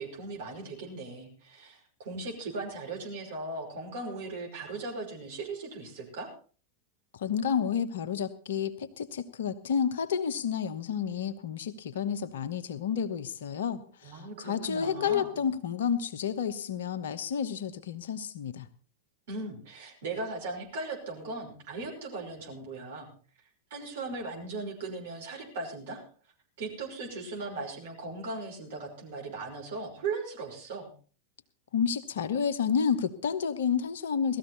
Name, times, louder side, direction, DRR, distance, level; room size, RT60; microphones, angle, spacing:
voice 1, 0.0-6.3 14.0-15.3 19.3-23.1 23.7-26.0 26.6-30.9, right 3 dB, 55° right, 0 dB, 5.6 m, -38 dB
voice 2, 7.1-18.7 31.7-34.4, left 7 dB, 60° left, 11 dB, 1.2 m, -30 dB
18.0 x 14.0 x 4.1 m, 0.40 s
figure-of-eight pair, 90°, 0 cm